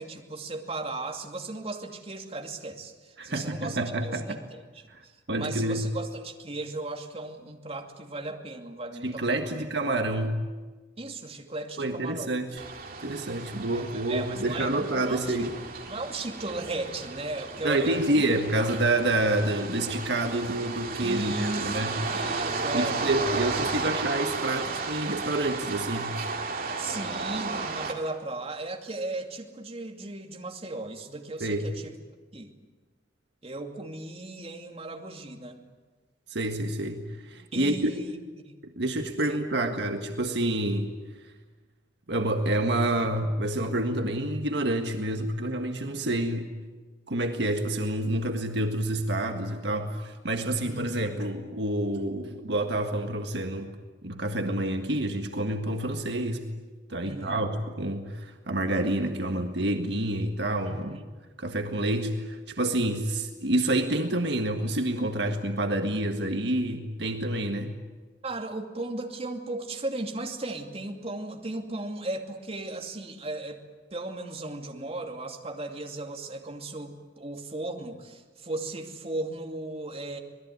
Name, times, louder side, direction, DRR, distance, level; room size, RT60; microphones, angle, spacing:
voice 1, 0.0-9.6 11.0-12.3 13.7-15.5 15.9-18.2 18.6-18.8 21.0-23.0 23.4-23.8 26.8-31.9 32.3-32.5 33.4-35.6 37.5-38.2 38.4-38.5 39.3-39.8 50.6-51.1 57.0-57.5 60.7-61.0 68.2-73.6 73.9-80.2, right 2 dB, 30° right, 3 dB, 2.5 m, -36 dB
voice 2, 3.2-4.4 4.9-5.0 5.3-5.8 9.0-10.4 11.8-12.5 13.0-15.5 17.6-21.9 22.7-26.1 31.4-31.7 36.3-37.9 38.6-40.9 42.1-46.5 47.1-53.7 54.0-56.4 56.9-61.0 61.4-67.7, right 1 dB, 65° right, 5 dB, 1.7 m, -28 dB
sound 1, 12.6-27.9, right 4 dB, 50° right, 2.8 m, -34 dB
26.0 x 20.0 x 9.5 m, 1.3 s
head